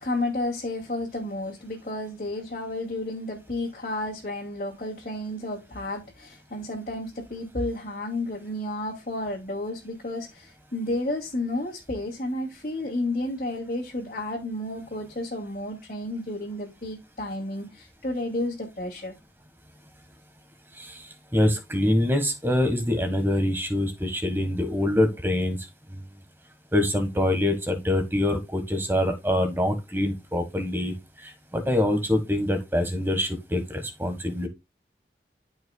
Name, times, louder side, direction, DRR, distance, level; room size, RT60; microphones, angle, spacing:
voice 1, 0.0-19.1, left 1 dB, 45° left, 2.6 m, -31 dB
voice 2, 21.3-25.6 25.9-26.0 26.7-30.9 31.2-34.5, left 1 dB, 15° right, 1.4 m, -25 dB
13.5 x 5.7 x 2.3 m
head